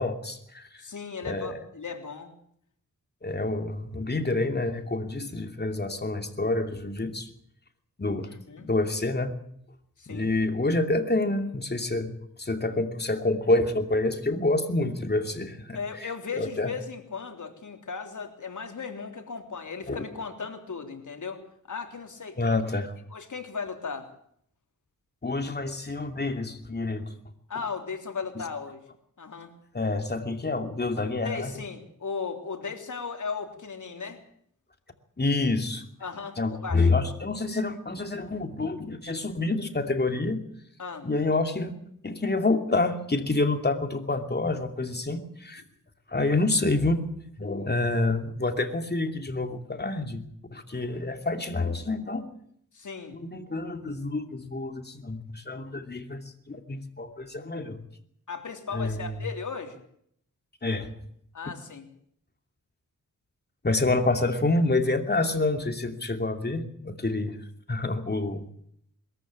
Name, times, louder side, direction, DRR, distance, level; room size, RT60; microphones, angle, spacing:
voice 1, 0.0-0.8 1.2-1.6 3.2-7.3 8.0-8.3 8.6-9.3 10.1-16.1 16.4-16.7 19.9-20.0 22.4-22.9 25.2-27.1 29.7-31.5 35.2-35.8 36.4-40.4 41.0-41.8 42.0-45.6 46.1-47.1 47.4-50.2 50.5-52.3 53.1-57.8 58.7-59.2 60.6-61.0 63.6-67.4 67.7-68.5, left 2 dB, 30° left, 6 dB, 2.7 m, -28 dB
voice 2, 0.8-2.3 8.4-8.7 10.0-10.3 15.7-22.6 23.1-24.1 27.5-28.8 29.2-29.5 31.2-34.2 36.0-36.9 40.8-41.1 52.7-53.2 58.3-59.8 61.3-61.8, left 5 dB, 65° left, 4 dB, 3.5 m, -36 dB
22.0 x 14.0 x 8.8 m, 0.68 s
wide cardioid pair, 90°, 32 cm